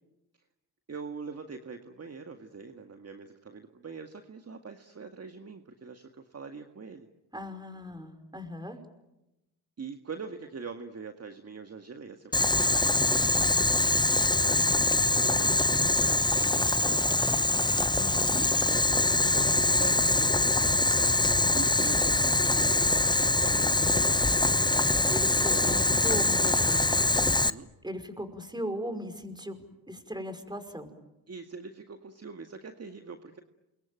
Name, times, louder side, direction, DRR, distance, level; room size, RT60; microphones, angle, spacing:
voice 1, 0.9-7.1 9.8-18.2 18.9-20.4 21.5-24.6 25.5-26.3 26.7-27.1 27.5-27.7 31.3-33.4, right 5 dB, 35° right, 6 dB, 2.0 m, -44 dB
voice 2, 7.3-8.8 17.9-18.5 25.1-26.9 27.8-30.9, equal, 10° right, 9 dB, 5.4 m, -38 dB
Boiling, 12.3-27.5, left 2 dB, 10° left, 0.9 m, -24 dB
28.5 x 23.0 x 9.2 m, 0.96 s
hypercardioid pair, 50°, 45 cm